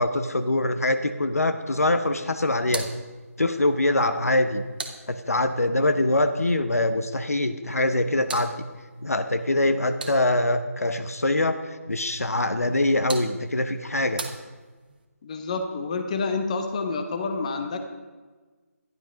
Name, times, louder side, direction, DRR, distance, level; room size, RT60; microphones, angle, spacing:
voice 1, 0.0-2.9 3.4-4.6 5.1-8.5 9.0-14.2, left 2 dB, 70° left, 9 dB, 1.0 m, -24 dB
sound 1, 2.6-5.7 7.7-10.6 12.6-15.1, right 4 dB, 35° right, 1.1 m, -41 dB
voice 2, 15.2-17.8, left 4 dB, 25° left, 6 dB, 0.9 m, -28 dB
12.5 x 11.0 x 5.0 m, 1.3 s
figure-of-eight pair, 155°, 8 cm